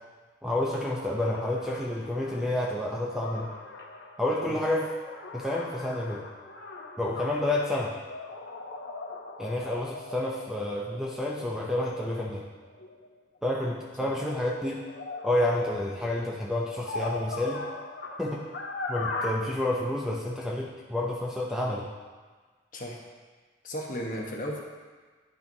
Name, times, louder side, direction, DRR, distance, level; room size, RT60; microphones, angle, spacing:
voice 1, 0.4-3.5 4.2-4.8 5.3-6.2 7.0-8.0 9.4-12.4 13.4-14.8 15.2-17.6 18.2-18.4 18.9-21.9, left 1 dB, 5° right, -3 dB, 0.5 m, -29 dB
sound 1, 0.8-13.5 14.0-19.3, left 3 dB, 65° left, 0.7 m, -40 dB
voice 2, 23.6-24.6, equal, 45° left, -1 dB, 1.0 m, -34 dB
10.5 x 5.6 x 2.7 m, 1.4 s
head